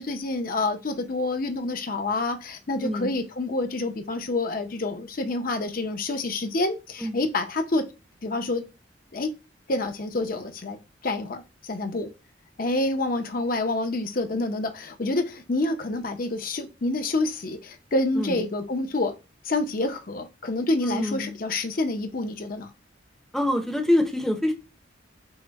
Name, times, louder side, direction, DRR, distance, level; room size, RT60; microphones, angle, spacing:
voice 1, 0.0-7.8 8.2-8.6 9.1-9.3 9.7-12.1 12.6-19.1 19.4-22.7, left 2 dB, 45° left, 0.7 m, -28 dB
voice 2, 2.8-3.1 7.0-7.2 18.2-18.4 20.8-21.4 23.3-24.5, left 1 dB, ahead, 0.6 m, -25 dB
5.7 x 2.2 x 4.0 m
head